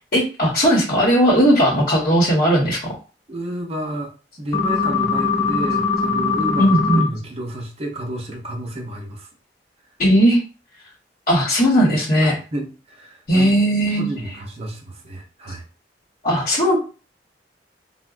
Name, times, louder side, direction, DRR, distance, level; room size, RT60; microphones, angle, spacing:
voice 1, 0.1-3.0 6.6-7.1 10.0-10.4 11.3-12.4 13.3-14.1 16.2-16.8, equal, 50° left, -4 dB, 1.0 m, -17 dB
voice 2, 3.3-9.3 12.2-13.5 14.0-15.6, right 1 dB, 35° right, 1 dB, 0.6 m, -31 dB
sound 1, 4.5-7.0, left 4 dB, 30° left, 1.2 m, -21 dB
3.8 x 2.1 x 2.4 m, 0.34 s
head